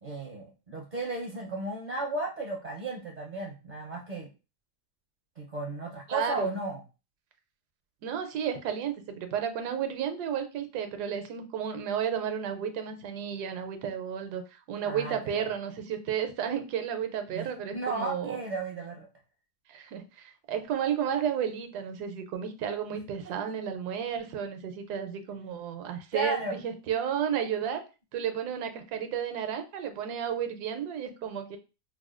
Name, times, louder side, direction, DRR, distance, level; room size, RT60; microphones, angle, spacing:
voice 1, 0.0-4.3 5.4-6.8 14.8-15.5 17.3-17.5 17.7-19.1 26.1-26.6, right 2 dB, 50° right, -1 dB, 0.5 m, -34 dB
voice 2, 6.1-6.6 8.0-18.4 19.7-27.8 28.1-31.6, right 8 dB, 80° right, 7 dB, 1.1 m, -32 dB
4.7 x 2.2 x 2.4 m, 0.31 s
omnidirectional pair, 1.8 m